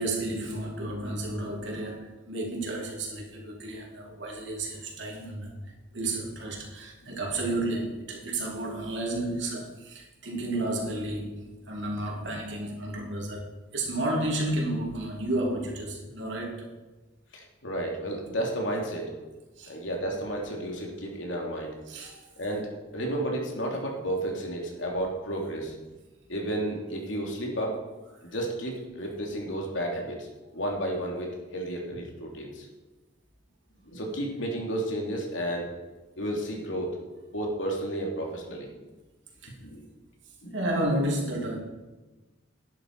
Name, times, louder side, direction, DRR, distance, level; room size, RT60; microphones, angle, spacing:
voice 1, 0.0-5.6 5.9-16.7 19.6-19.7 21.9-22.3 39.4-39.5 40.5-41.6, right 1 dB, 70° right, -1 dB, 3.0 m, -32 dB
voice 2, 17.3-19.1 19.7-21.8 22.4-25.7 26.3-27.8 28.2-30.3 30.5-32.7 33.8-35.7 36.2-37.0 37.3-38.8 39.6-39.8 40.4-40.6, right 1 dB, 80° left, 0 dB, 2.8 m, -32 dB
12.0 x 10.5 x 4.7 m, 1.2 s
head